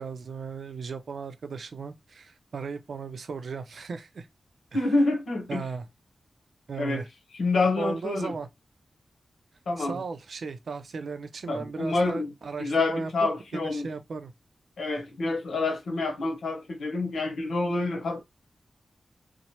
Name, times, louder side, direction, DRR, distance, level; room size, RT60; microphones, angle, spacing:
voice 1, 0.0-4.3 4.7-4.9 5.5-5.8 6.7-7.1 7.8-8.5 9.8-13.1 13.5-14.3, right 4 dB, 70° right, 0.4 m, -36 dB
voice 2, 4.7-5.6 6.8-7.0 7.3-8.3 9.7-10.0 11.5-12.3 12.6-13.9 14.8-18.2, left 3 dB, 90° left, 0.9 m, -27 dB
3.0 x 2.0 x 2.8 m
wide cardioid pair, 85°, 0 cm